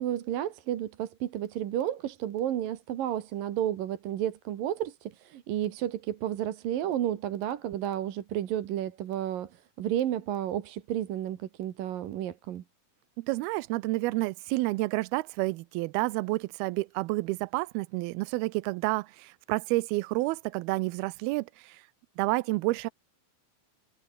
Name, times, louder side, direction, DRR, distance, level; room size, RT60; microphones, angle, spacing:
voice 1, 0.0-12.6, right 11 dB, 70° right, 3.2 m, -32 dB
voice 2, 13.2-21.8 22.2-22.9, right 21 dB, 85° right, 2.6 m, -29 dB
omnidirectional pair, 4.3 m